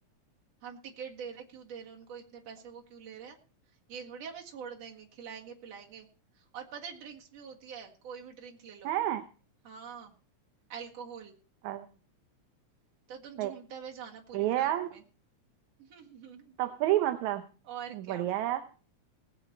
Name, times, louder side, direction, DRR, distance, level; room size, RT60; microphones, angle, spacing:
voice 1, 0.6-3.4 3.9-6.1 6.4-8.9 9.6-10.2 10.7-11.4 13.1-15.0 15.8-16.6 17.6-18.3, right 7 dB, 60° right, 1 dB, 2.9 m, -45 dB
voice 2, 8.8-9.2 11.6-11.9 13.4-13.5 14.3-14.9 16.6-17.4 17.9-18.6, right 14 dB, 75° right, 8 dB, 2.1 m, -29 dB
19.0 x 8.4 x 4.4 m, 0.37 s
omnidirectional pair, 3.5 m